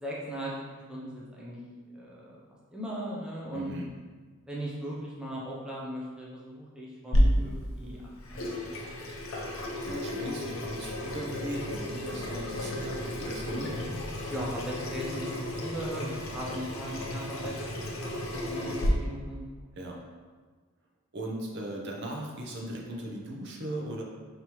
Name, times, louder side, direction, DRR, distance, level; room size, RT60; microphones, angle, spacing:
voice 1, 0.0-1.6 1.9-2.4 2.7-3.7 4.5-8.0 8.3-8.4 14.3-19.4, right 1 dB, 5° right, -6 dB, 0.5 m, -38 dB
voice 2, 3.5-3.9 9.8-13.8 19.7-20.0 21.1-24.0, right 1 dB, 50° right, -2 dB, 0.7 m, -38 dB
Water tap faucet / Sink (filling or washing), 7.1-18.9, equal, 65° left, 0.7 m, -32 dB
5.2 x 2.9 x 3.0 m, 1.5 s
head